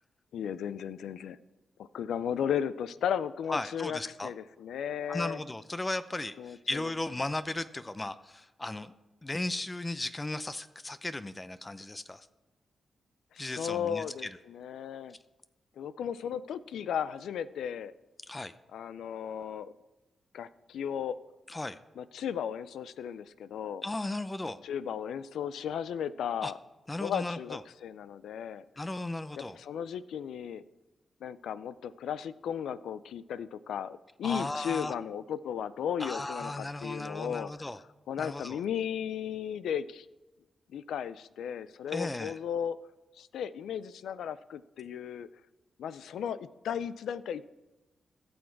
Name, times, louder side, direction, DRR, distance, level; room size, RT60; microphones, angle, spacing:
voice 1, 0.3-1.4 1.8-5.4 6.4-6.8 13.3-15.2 15.8-17.9 18.7-19.7 20.3-21.2 22.0-23.8 24.6-26.6 27.0-28.6 29.4-30.6 31.2-37.5 38.1-40.1 40.7-42.8 43.2-45.3 45.8-47.5, left 8 dB, 90° left, 16 dB, 0.4 m, -35 dB
voice 2, 3.5-4.3 5.1-8.9 9.2-12.3 13.4-14.4 18.3-18.5 21.5-21.8 23.8-24.6 26.4-26.5 26.9-27.6 28.8-29.6 34.2-34.9 36.0-37.8 38.2-38.6 41.9-42.4, left 2 dB, 25° left, 13 dB, 0.6 m, -36 dB
16.5 x 6.4 x 4.6 m, 1.1 s
cardioid pair, 60°, 0 cm